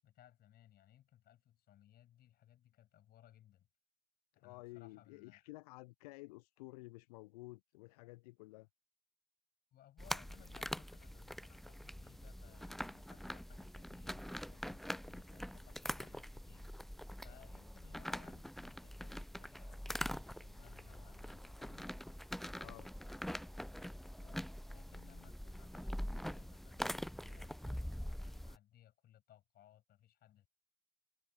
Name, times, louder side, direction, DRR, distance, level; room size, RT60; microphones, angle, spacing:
voice 1, 0.0-3.7 4.3-5.5 9.7-16.7 17.2-21.9 24.2-24.4 24.7-30.5, left 12 dB, 50° left, 7.0 m, -64 dB
voice 2, 4.4-8.7 22.6-22.9, left 23 dB, 70° left, 0.8 m, -53 dB
sound 1, 10.0-28.6, equal, ahead, 0.5 m, -44 dB
figure-of-eight pair, 60°, 20 cm